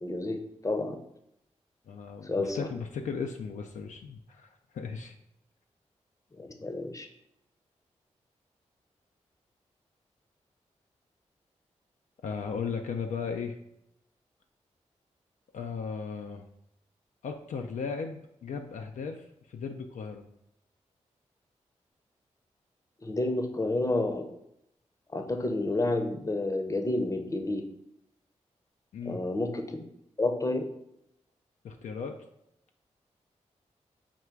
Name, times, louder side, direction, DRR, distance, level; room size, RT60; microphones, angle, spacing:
voice 1, 0.0-1.0 2.2-2.7 6.4-7.1 23.0-24.3 25.1-27.6 29.1-29.8 30.2-30.7, left 2 dB, 25° left, 5 dB, 0.6 m, -30 dB
voice 2, 1.9-5.1 12.2-13.6 15.5-16.4 17.2-20.2 28.9-29.2 31.6-32.2, left 5 dB, 75° left, 4 dB, 0.4 m, -36 dB
3.7 x 2.2 x 4.4 m, 0.79 s
supercardioid pair, 40°, 13 cm